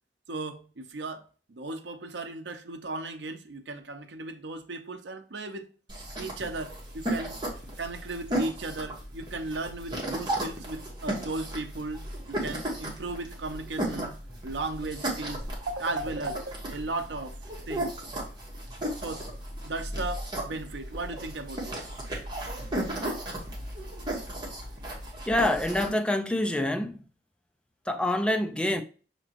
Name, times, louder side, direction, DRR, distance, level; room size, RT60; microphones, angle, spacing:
voice 1, 0.3-5.7 6.2-7.4 7.8-17.4 17.7-18.0 19.0-19.3 19.6-21.9, right 2 dB, 80° right, 0.6 m, -36 dB
sound 1, 5.9-25.9, right 1 dB, 25° right, 1.3 m, -35 dB
voice 2, 25.3-27.0 27.9-28.8, left 1 dB, 5° left, 0.3 m, -26 dB
6.0 x 2.9 x 2.8 m
head